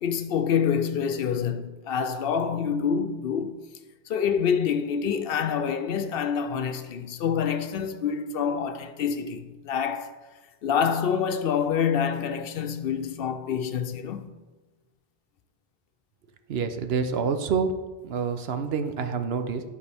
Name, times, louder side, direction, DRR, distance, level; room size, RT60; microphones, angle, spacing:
voice 1, 0.0-3.7 4.1-10.2 10.6-14.4, left 7 dB, 70° left, 0.8 m, -27 dB
voice 2, 16.5-17.7 18.0-19.6, right 6 dB, 75° right, 0.9 m, -27 dB
11.5 x 4.8 x 3.4 m
omnidirectional pair, 1.1 m